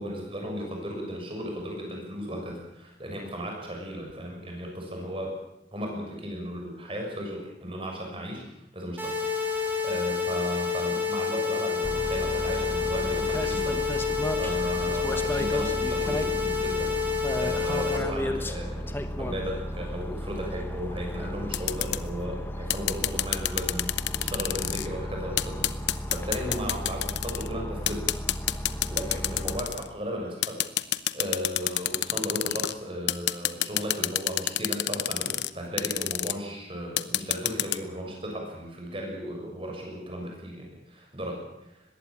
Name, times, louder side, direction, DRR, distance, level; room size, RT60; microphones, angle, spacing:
voice 1, 0.0-5.3 5.7-8.4 8.7-13.8 14.1-16.9 17.4-28.0 28.5-30.6 31.1-41.8, equal, 30° right, 1 dB, 6.7 m, -35 dB
sound 1, 9.0-18.0, left 6 dB, 10° right, 4.2 m, -28 dB
sound 2, 11.8-29.6, equal, 10° left, 1.3 m, -34 dB
sound 3, 21.5-22.0 22.7-24.9 25.4-27.5 27.9-29.9 30.4-32.7 33.1-35.5 35.8-36.3 37.0-37.8, left 13 dB, 80° left, 0.8 m, -27 dB
21.0 x 16.0 x 8.7 m, 0.86 s
head